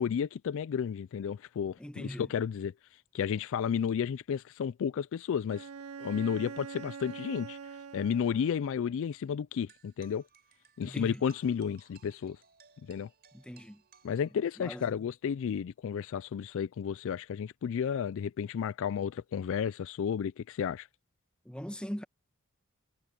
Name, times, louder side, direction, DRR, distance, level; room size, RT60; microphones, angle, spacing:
voice 1, 0.0-2.7 3.1-5.7 6.0-7.6 7.9-10.2 10.8-12.4 12.9-13.1 14.0-20.9, left 7 dB, 60° left, 0.3 m, -32 dB
voice 2, 1.8-2.3 10.8-11.2 13.3-13.8 14.6-14.9 21.4-22.0, equal, 5° left, 1.1 m, -40 dB
Bowed string instrument, 5.5-9.0, right 5 dB, 80° right, 0.6 m, -44 dB
sound 1, 9.7-14.7, right 7 dB, 45° right, 4.5 m, -62 dB
head